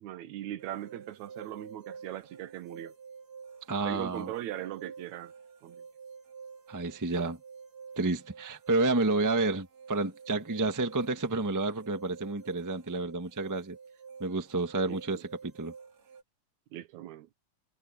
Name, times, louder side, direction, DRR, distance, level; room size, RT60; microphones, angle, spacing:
voice 1, 0.0-2.9 3.8-5.3 5.6-5.8 14.9-15.2 16.7-17.3, right 13 dB, 75° right, 2.0 m, -40 dB
sound 1, 0.6-16.2, right 5 dB, 60° right, 3.6 m, -49 dB
voice 2, 3.7-4.3 6.7-7.4 8.0-13.8 14.2-15.7, right 3 dB, 10° right, 0.8 m, -30 dB
omnidirectional pair, 3.5 m